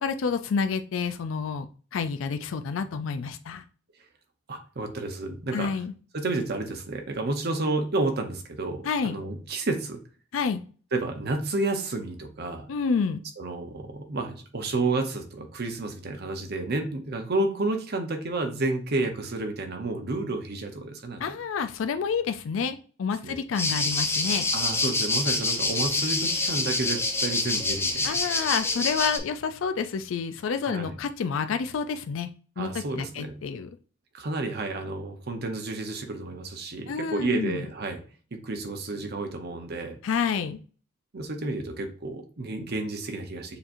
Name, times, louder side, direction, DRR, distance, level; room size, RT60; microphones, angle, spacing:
voice 1, 0.0-1.7 1.9-3.6 5.5-5.9 8.8-9.1 10.3-10.6 12.7-13.2 21.2-24.5 28.0-32.3 32.6-33.7 36.9-37.7 40.0-40.6, left 5 dB, 85° left, 9 dB, 0.4 m, -29 dB
voice 2, 4.5-5.7 6.1-10.0 10.9-12.7 13.4-21.3 23.2-23.4 24.5-28.1 30.7-31.0 32.6-33.3 34.1-38.0 38.3-40.0 41.1-43.6, right 2 dB, 55° right, 5 dB, 0.8 m, -31 dB
sound 1, 23.5-29.2, left 3 dB, 15° left, 0.6 m, -26 dB
6.7 x 2.9 x 2.6 m, 0.40 s
head